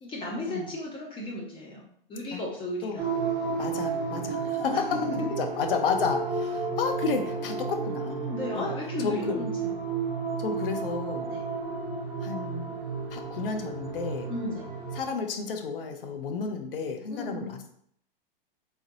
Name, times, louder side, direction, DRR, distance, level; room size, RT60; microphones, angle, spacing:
voice 1, 0.0-3.1 4.7-4.8 5.2-5.3 8.3-9.7 11.3-11.4 14.3-14.7 17.1-17.6, left 1 dB, 15° left, -2 dB, 0.6 m, -35 dB
sound 1, 3.0-15.0, right 4 dB, 10° right, 1.1 m, -32 dB
voice 2, 3.6-4.9 5.4-8.7 9.0-9.4 10.4-11.3 12.2-12.7 13.1-14.3 14.9-17.7, left 5 dB, 70° left, 5 dB, 0.7 m, -32 dB
3.5 x 3.3 x 2.6 m, 0.67 s
hypercardioid pair, 115°, 29 cm